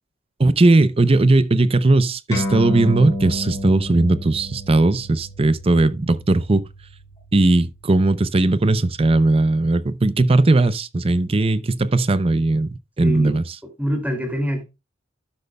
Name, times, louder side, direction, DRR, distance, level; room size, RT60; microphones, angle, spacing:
voice 1, 0.4-6.7 7.3-13.4, right 2 dB, 30° right, 0.5 m, -18 dB
sound 1, 2.3-9.1, left 1 dB, 15° left, 5.2 m, -31 dB
voice 2, 13.0-13.4 13.8-14.6, equal, 10° right, 2.5 m, -25 dB
12.0 x 8.2 x 2.2 m
head